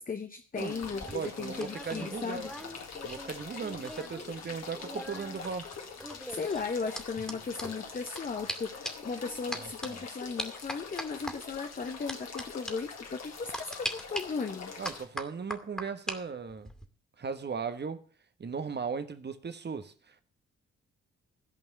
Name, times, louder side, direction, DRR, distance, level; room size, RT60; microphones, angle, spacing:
voice 1, 0.0-2.5 6.3-14.7, left 4 dB, 25° left, 0.9 m, -36 dB
sound 1, 0.6-15.1, left 5 dB, 50° left, 2.1 m, -44 dB
voice 2, 0.6-2.5 3.0-5.7 9.5-10.0 14.8-16.7 17.2-18.0 18.4-20.2, right 5 dB, 30° right, 1.2 m, -37 dB
sound 2, 0.8-4.2 4.5-8.2 8.5-8.6 8.8-9.1 9.5-9.9 10.4-11.3 12.1-12.4 12.7-12.8 13.5-14.2 14.8-16.2 16.5-16.9, equal, ahead, 2.4 m, -40 dB
14.5 x 5.4 x 8.2 m
figure-of-eight pair, 40°, 35 cm